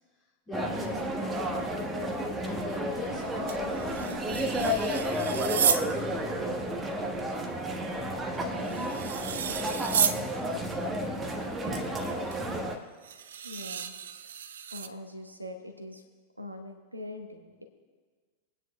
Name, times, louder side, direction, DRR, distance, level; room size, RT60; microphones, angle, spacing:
voice 1, 0.5-4.7 5.0-7.1, left 3 dB, 25° left, -10 dB, 2.4 m, -45 dB
sound 1, 0.5-12.8, equal, 15° right, 1.3 m, -31 dB
sound 2, 3.5-5.9 8.3-10.2 12.3-12.4 13.0-14.9, right 8 dB, 65° right, 0.5 m, -31 dB
voice 2, 13.4-13.9 14.7-16.0 16.4-17.6, left 1 dB, 85° right, 5 dB, 1.2 m, -42 dB
26.5 x 9.3 x 2.3 m, 1.5 s
figure-of-eight pair, 90°, 0 cm